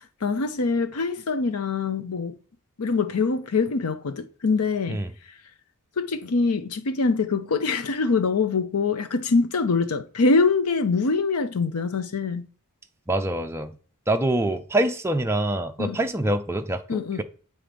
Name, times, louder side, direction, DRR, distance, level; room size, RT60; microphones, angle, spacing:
voice 1, 0.2-2.3 2.8-5.0 6.0-12.5 15.8-16.0 16.9-17.2, left 4 dB, 85° left, 0.7 m, -24 dB
voice 2, 13.1-13.7 14.1-17.2, right 1 dB, 10° right, 0.5 m, -25 dB
7.5 x 4.2 x 5.1 m
head